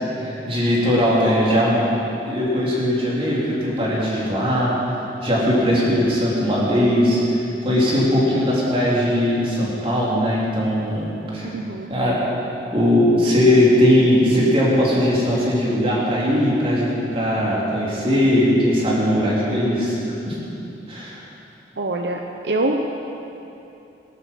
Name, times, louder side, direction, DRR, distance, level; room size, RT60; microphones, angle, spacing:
voice 1, 0.0-1.8 2.3-4.8 5.2-11.5 11.9-12.2 12.7-20.4 20.9-21.2, equal, 30° right, -6 dB, 3.8 m, -19 dB
voice 2, 5.7-6.1 11.4-11.9 21.8-22.9, right 2 dB, 75° right, 2 dB, 0.9 m, -25 dB
19.0 x 12.0 x 5.6 m, 2.9 s
head